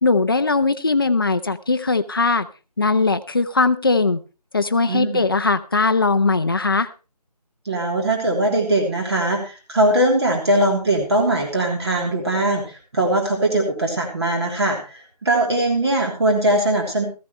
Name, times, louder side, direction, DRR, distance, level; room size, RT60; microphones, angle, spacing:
voice 1, 0.0-2.5 2.8-4.2 4.5-6.9, left 3 dB, 35° left, 11 dB, 0.8 m, -19 dB
voice 2, 4.9-5.3 7.6-17.0, right 1 dB, 40° right, 1 dB, 3.3 m, -21 dB
15.5 x 15.0 x 3.2 m, 0.32 s
figure-of-eight pair, 165°, 21 cm